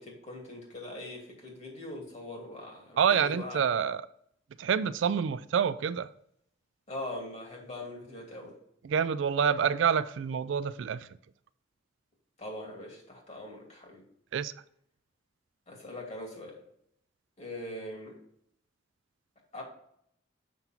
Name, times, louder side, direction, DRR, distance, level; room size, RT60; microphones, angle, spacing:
voice 1, 0.0-3.6 6.9-8.6 12.4-14.0 15.7-16.6 17.4-18.1 19.5-19.6, left 1 dB, 35° left, 2.6 m, -41 dB
voice 2, 3.0-4.0 4.6-6.1 8.8-11.1 14.3-14.5, right 7 dB, 70° right, 0.4 m, -27 dB
7.0 x 5.9 x 4.4 m
head